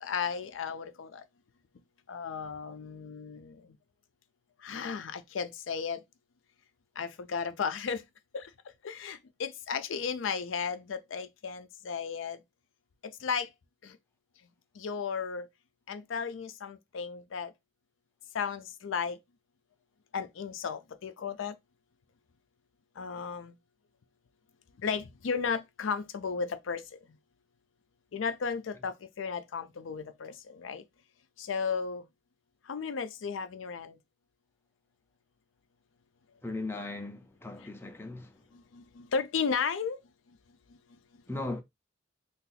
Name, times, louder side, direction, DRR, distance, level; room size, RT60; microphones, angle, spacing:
voice 1, 0.0-1.2 2.1-3.6 4.6-6.0 7.0-8.0 8.3-8.5 8.8-12.4 13.0-13.5 13.8-13.9 14.8-15.5 15.9-17.5 18.3-19.2 20.1-21.5 23.0-23.5 24.8-26.8 28.1-30.8 31.4-32.0 32.7-34.0 38.7-40.0, left 6 dB, 80° left, 0.5 m, -34 dB
voice 2, 36.4-38.3 41.3-41.6, left 2 dB, 10° left, 0.4 m, -37 dB
2.7 x 2.4 x 3.9 m
head